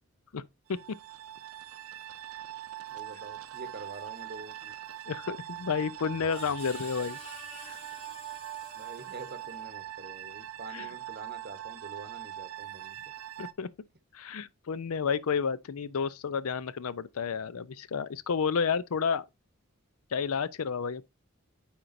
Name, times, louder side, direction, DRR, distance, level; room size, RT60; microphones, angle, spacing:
sound 1, 0.7-13.5, right 12 dB, 75° right, 0.5 m, -42 dB
voice 1, 2.9-4.7 8.7-13.0, right 3 dB, 45° right, 0.8 m, -46 dB
voice 2, 5.1-7.2 7.6-7.8 10.7-10.9 13.4-13.7 14.1-19.2 20.1-21.0, left 6 dB, 80° left, 0.5 m, -31 dB
Screech, 5.5-9.8, left 2 dB, 25° left, 3.2 m, -50 dB
9.1 x 4.5 x 2.6 m
head